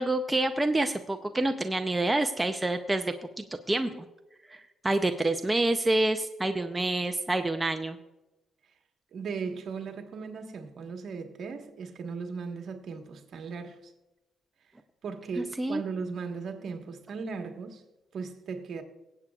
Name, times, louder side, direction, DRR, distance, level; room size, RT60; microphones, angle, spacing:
voice 1, 0.0-4.0 4.5-8.0 15.4-15.8, right 2 dB, 15° right, 0.6 m, -28 dB
voice 2, 9.1-13.8 15.0-17.8 18.1-18.8, right 5 dB, 60° right, 1.4 m, -37 dB
23.0 x 8.3 x 2.4 m
cardioid pair, 90°, 0 cm